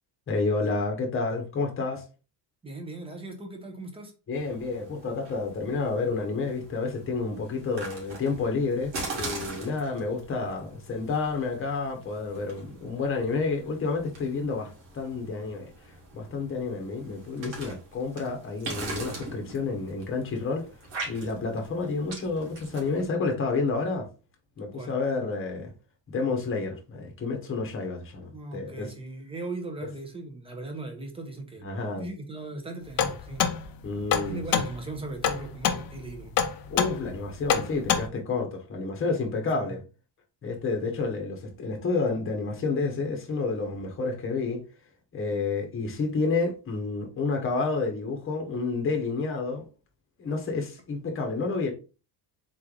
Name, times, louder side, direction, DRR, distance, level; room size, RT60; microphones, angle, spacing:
voice 1, 0.3-2.0 4.3-15.7 16.1-20.7 21.1-24.1 24.6-25.7 26.1-28.9 31.6-32.0 33.8-34.4 36.7-39.8 40.4-44.6 45.1-49.6 50.2-51.7, left 4 dB, 30° left, 1.0 m, -30 dB
voice 2, 2.6-4.1 24.7-24.9 28.3-31.7 32.0-33.5 34.3-36.3 39.7-39.8, right 2 dB, 10° right, 0.8 m, -38 dB
sound 1, 4.3-23.0, right 2 dB, 75° right, 2.0 m, -42 dB
sound 2, 33.0-38.1, left 8 dB, 50° left, 0.6 m, -27 dB
4.0 x 3.2 x 3.8 m
cardioid pair, 170°, 45 cm